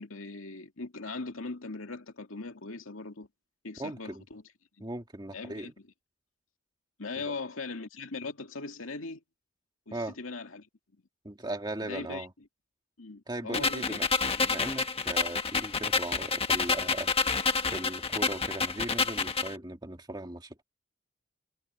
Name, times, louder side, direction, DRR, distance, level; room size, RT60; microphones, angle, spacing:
voice 1, 0.0-3.3 3.6-4.4 4.8-4.9 5.3-5.7 7.0-9.2 9.9-10.7 11.8-12.3 13.0-14.0, left 3 dB, 80° left, 2.4 m, -40 dB
voice 2, 3.8-4.2 4.8-5.7 7.2-7.4 9.9-10.2 11.2-12.3 13.3-14.1 14.4-20.6, right 1 dB, 20° right, 2.3 m, -38 dB
sound 1, 13.5-19.5, left 4 dB, 30° left, 1.3 m, -29 dB
head